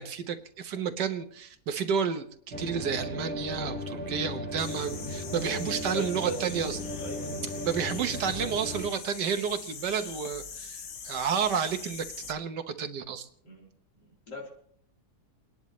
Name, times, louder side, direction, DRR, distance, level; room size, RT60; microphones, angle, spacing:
voice 1, 0.0-6.8 7.6-13.3, right 7 dB, 80° right, 7 dB, 1.7 m, -31 dB
sound 1, 2.5-8.9, left 1 dB, 5° left, 2.0 m, -36 dB
sound 2, 4.6-12.3, left 6 dB, 50° left, 1.2 m, -43 dB
voice 2, 5.3-6.4 7.0-7.6 13.4-13.7 14.3-14.5, left 1 dB, 80° left, -2 dB, 4.3 m, -39 dB
29.5 x 10.5 x 3.1 m, 0.63 s
omnidirectional pair, 1.8 m